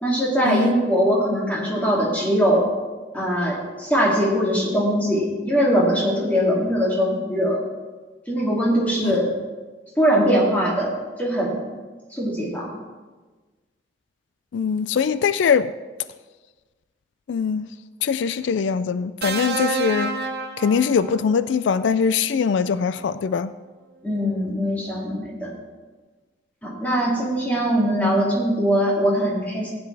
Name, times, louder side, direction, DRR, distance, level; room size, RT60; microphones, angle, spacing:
voice 1, 0.0-2.6 3.1-7.6 8.3-9.3 10.0-11.6 12.1-12.7 24.0-25.5 26.6-29.7, equal, 10° left, -4 dB, 2.5 m, -21 dB
voice 2, 14.5-15.7 17.3-17.7 18.0-20.1 20.6-23.5, left 6 dB, 85° left, 14 dB, 0.3 m, -22 dB
sound 1, 19.2-21.5 22.8-23.0, right 3 dB, 60° right, 0.7 m, -29 dB
15.5 x 9.7 x 3.3 m, 1.3 s
head